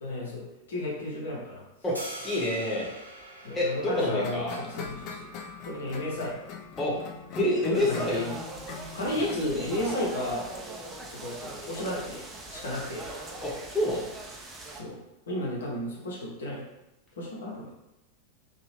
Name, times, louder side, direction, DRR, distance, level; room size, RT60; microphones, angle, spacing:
voice 1, 0.0-1.6 3.4-5.3 5.7-6.4 7.8-8.4 8.9-10.5 11.1-13.1 14.7-15.0 15.3-16.6 17.2-17.7, left 1 dB, 65° left, -4 dB, 0.8 m, -33 dB
voice 2, 1.8-2.9 3.5-4.6 6.8-7.0 7.3-8.2 9.1-9.3 9.8-9.9 13.4-14.1, left 1 dB, 15° left, -5 dB, 0.9 m, -28 dB
sound 1, 1.9-8.0, right 1 dB, 90° right, 0.6 m, -46 dB
sound 2, 4.0-14.1, left 5 dB, 40° left, 0.4 m, -44 dB
sound 3, 7.7-14.8, right 2 dB, 15° right, 0.5 m, -41 dB
2.8 x 2.4 x 3.1 m, 0.93 s
figure-of-eight pair, 90°, 0 cm